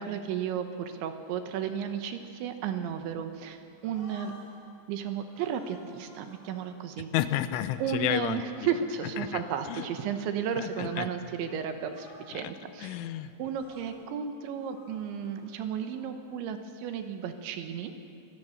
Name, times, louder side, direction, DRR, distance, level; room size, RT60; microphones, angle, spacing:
voice 1, 0.0-4.3 4.9-7.1 7.8-13.0 13.4-17.9, right 8 dB, 75° right, 7 dB, 3.3 m, -33 dB
sound 1, 2.8-3.5 3.8-4.7 5.3-6.7 7.6-11.1 11.4-11.6 11.8-12.6 13.4-14.0 14.6-16.0, left 2 dB, 55° left, 8.4 m, -55 dB
voice 2, 7.1-8.7 9.2-9.4 9.7-9.9 10.6-11.1 12.3-12.5 12.8-13.3, left 12 dB, 80° left, 12 dB, 3.2 m, -31 dB
25.5 x 19.0 x 6.6 m, 2.4 s
omnidirectional pair, 5.6 m